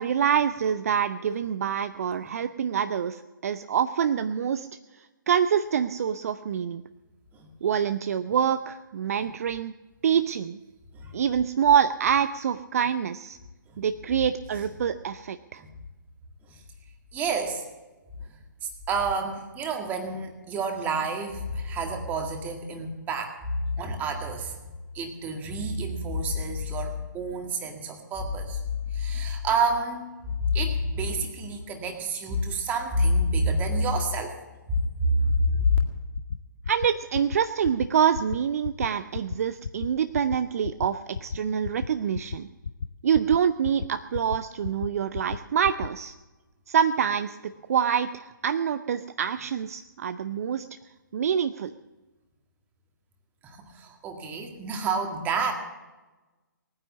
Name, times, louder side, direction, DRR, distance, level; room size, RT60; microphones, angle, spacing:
voice 1, 0.0-4.7 5.0-6.8 7.6-9.7 10.0-10.6 11.1-13.4 13.8-15.6 36.7-42.5 43.0-46.1 46.7-47.4 47.7-50.8 51.1-51.7, right 8 dB, 45° right, 12 dB, 0.5 m, -26 dB
voice 2, 17.1-17.6 18.9-23.3 23.7-24.5 24.9-30.1 30.5-34.3 34.7-35.8 53.4-55.5, right 1 dB, 15° right, 4 dB, 1.9 m, -28 dB
sound 1, 35.6-35.9 36.1-36.4 36.6-36.9 37.1-37.4 37.6-37.9 38.1-38.4 38.6-38.9 39.1-39.4 39.6-39.9 40.1-40.4 40.6-40.9 41.1-41.4 41.6-41.9 42.1-42.4 42.6-42.9 43.1-43.4 43.6-43.9 44.1-44.4 44.6-44.9 45.1-45.4 45.6-45.9, left 5 dB, 65° left, 0.6 m, -32 dB
19.0 x 9.6 x 7.3 m, 1.2 s
figure-of-eight pair, 140°, 11 cm